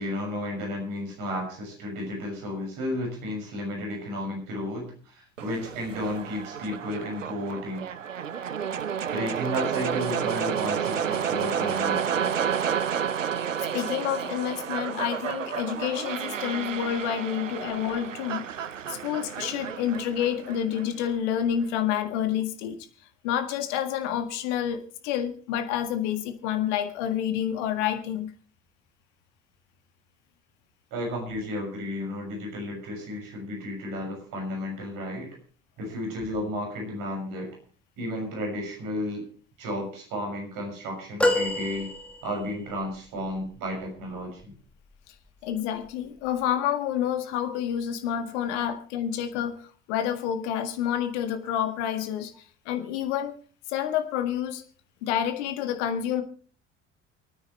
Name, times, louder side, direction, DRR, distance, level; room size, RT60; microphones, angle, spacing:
voice 1, 0.0-7.8 9.1-12.3 14.2-14.3 30.9-35.3 35.8-37.5 38.0-39.2 39.6-41.9 42.2-44.5, equal, 60° right, 1 dB, 6.5 m, -33 dB
sound 1, 5.4-21.4, right 8 dB, 85° right, 0.6 m, -31 dB
voice 2, 13.7-18.5 18.9-22.8 23.2-28.3 45.1-45.2 45.4-52.3 52.6-53.4 53.7-54.6 55.0-56.2, left 10 dB, 65° left, 8 dB, 1.8 m, -28 dB
sound 2, 41.2-42.6 43.3-43.4, left 1 dB, 5° left, 2.1 m, -27 dB
28.5 x 9.6 x 3.2 m, 0.42 s
figure-of-eight pair, 55°, 37 cm